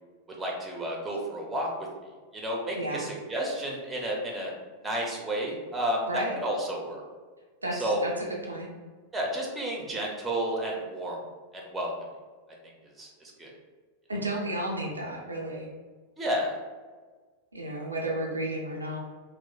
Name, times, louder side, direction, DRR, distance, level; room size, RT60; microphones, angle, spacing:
voice 1, 0.3-1.7 2.3-4.5 4.8-7.0 7.7-8.0 9.1-11.2 11.5-11.9 13.0-13.5 16.2-16.5, right 1 dB, 15° right, -1 dB, 0.6 m, -31 dB
voice 2, 2.8-3.1 6.1-6.3 7.6-8.7 14.1-15.7 17.5-19.0, right 1 dB, 80° right, 0 dB, 0.3 m, -32 dB
3.0 x 2.0 x 2.2 m, 1.4 s
figure-of-eight pair, 90°, 0 cm